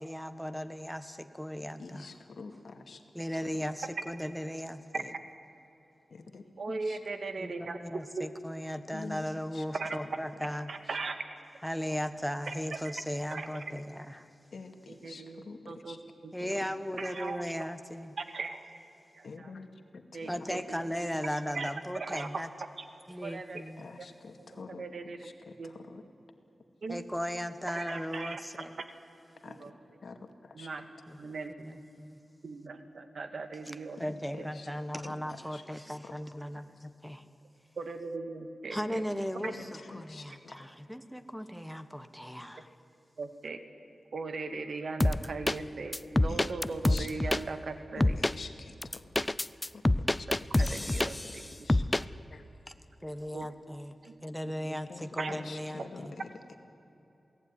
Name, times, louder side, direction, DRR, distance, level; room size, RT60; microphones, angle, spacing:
voice 1, 0.0-2.0 3.1-5.1 7.4-10.7 11.6-14.3 16.3-18.2 20.3-22.5 23.1-23.9 26.9-28.7 31.1-32.2 34.0-37.2 38.7-42.7 53.0-54.0 54.2-56.1, equal, ahead, 9 dB, 1.4 m, -37 dB
voice 2, 1.8-3.0 3.4-3.5 6.1-7.0 8.9-10.0 10.8-11.0 14.5-16.0 16.4-16.7 19.2-20.6 21.3-21.4 23.8-26.0 29.4-29.8 30.0-30.7 34.0-34.7 35.0-35.7 36.0-36.1 36.5-36.8 39.4-40.7 42.7-42.8 46.3-46.4 46.7-47.6 47.9-49.1 49.7-51.8 52.3-52.7 54.9-56.5, left 4 dB, 70° left, 6 dB, 2.2 m, -47 dB
voice 3, 6.6-8.3 9.7-10.0 10.7-11.2 12.5-12.6 12.8-12.9 13.3-13.6 15.0-16.0 16.2-16.3 17.0-17.4 18.2-18.7 19.1-19.3 20.1-20.6 21.5-22.4 22.8-22.9 23.2-23.6 24.8-25.3 25.6-25.7 26.8-27.0 27.7-28.4 29.5-29.7 30.6-30.8 31.2-31.5 32.4-34.0 34.4-34.5 37.8-39.0 39.4-39.5 43.2-43.6 44.1-48.2 50.6-51.4 53.3-53.5 54.0-54.2 54.6-54.7 55.2-55.3, right 3 dB, 65° right, 8 dB, 2.0 m, -38 dB
sound 1, 45.0-45.6 45.9-47.4 48.0-48.3 48.8-51.4 51.7-52.0, left 1 dB, 20° left, 0.5 m, -26 dB
27.5 x 18.5 x 9.8 m, 3.0 s
wide cardioid pair, 95°, 0 cm